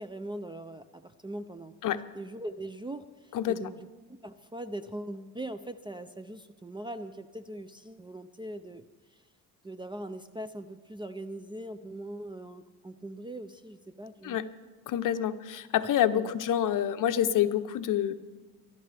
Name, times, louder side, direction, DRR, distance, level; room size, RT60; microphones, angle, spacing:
voice 1, 0.0-1.7 2.1-3.9 4.2-8.8 9.1-9.2 9.6-14.4 16.1-16.3, right 1 dB, 15° right, 11 dB, 0.4 m, -41 dB
voice 2, 3.3-3.7 14.2-14.5 14.9-18.1, left 10 dB, 55° left, 11 dB, 0.8 m, -27 dB
22.5 x 12.0 x 3.4 m, 1.4 s
cardioid pair, 120°, 38 cm